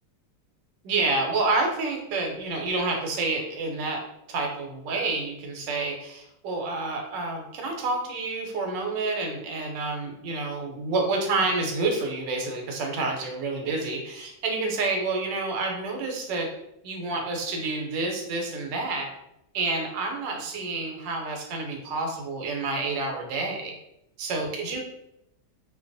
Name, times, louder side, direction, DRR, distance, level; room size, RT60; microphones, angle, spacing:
voice 1, 0.8-4.0 4.3-16.5 16.8-19.1 19.5-23.7 24.2-24.8, right 3 dB, 80° right, 2 dB, 1.3 m, -28 dB
2.8 x 2.2 x 2.5 m, 0.83 s
omnidirectional pair, 1.9 m